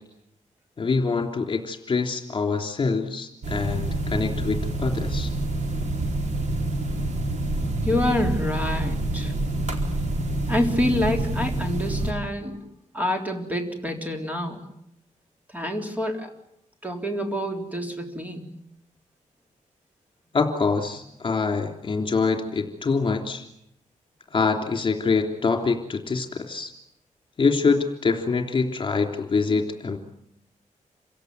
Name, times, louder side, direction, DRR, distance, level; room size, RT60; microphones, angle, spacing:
voice 1, 0.8-5.3 20.3-23.4 24.3-26.7 27.4-30.0, left 4 dB, 40° left, 4 dB, 3.4 m, -25 dB
sound 1, 3.4-12.1, right 2 dB, 65° right, 4.1 m, -27 dB
voice 2, 7.8-9.3 10.5-12.6 12.9-14.6 15.5-16.3 16.8-18.5, left 1 dB, 10° right, 3 dB, 3.7 m, -27 dB
28.0 x 17.0 x 9.6 m, 0.78 s
wide cardioid pair, 130°, 13 cm